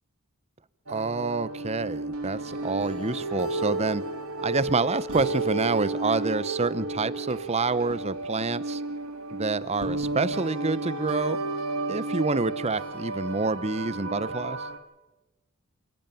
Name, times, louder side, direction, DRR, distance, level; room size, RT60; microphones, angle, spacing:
voice 1, 0.9-4.0 4.4-8.8 9.3-11.4 11.9-14.7, right 3 dB, 30° right, 16 dB, 0.8 m, -27 dB
sound 1, 0.9-14.8, right 2 dB, 75° right, 2.2 m, -32 dB
28.0 x 12.5 x 9.1 m, 1.1 s
head